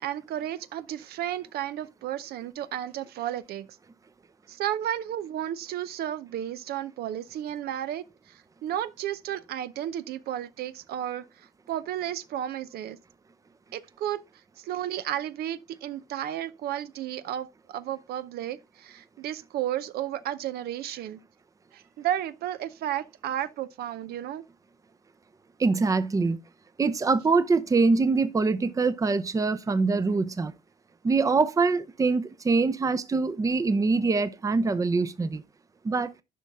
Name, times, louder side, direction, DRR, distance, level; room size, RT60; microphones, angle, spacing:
voice 1, 0.0-3.7 4.5-13.0 13.7-14.2 14.6-21.2 21.7-24.4, right 11 dB, 65° right, 0.6 m, -33 dB
voice 2, 25.6-26.4 26.8-30.5 31.0-35.4 35.8-36.1, right 4 dB, 20° right, 0.6 m, -24 dB
10.5 x 5.4 x 3.5 m
cardioid pair, 110°, 17 cm